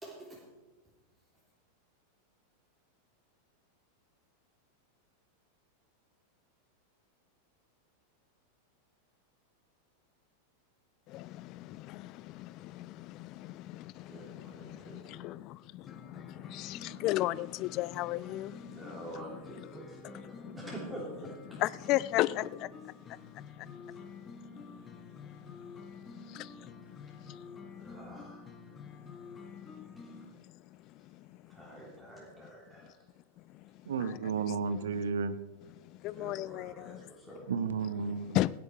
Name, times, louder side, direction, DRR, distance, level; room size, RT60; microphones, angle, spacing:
voice 1, 0.0-0.5 13.8-15.3 15.8-16.0 18.3-18.4 18.7-21.6 22.8-22.9 23.9-24.0 27.1-27.2 27.8-28.5 30.0-30.1 31.5-33.1 36.0-37.6, right 1 dB, 15° right, 3.3 m, -47 dB
voice 2, 11.1-18.7 21.6-22.7 26.3-26.5 36.0-37.0 38.3-38.5, left 17 dB, 40° left, 0.4 m, -34 dB
sound 1, 15.9-30.3, left 4 dB, 20° left, 1.3 m, -49 dB
voice 3, 33.9-35.4 37.5-38.4, right 5 dB, 65° right, 0.8 m, -32 dB
17.0 x 10.5 x 4.7 m
figure-of-eight pair, 90°, 0 cm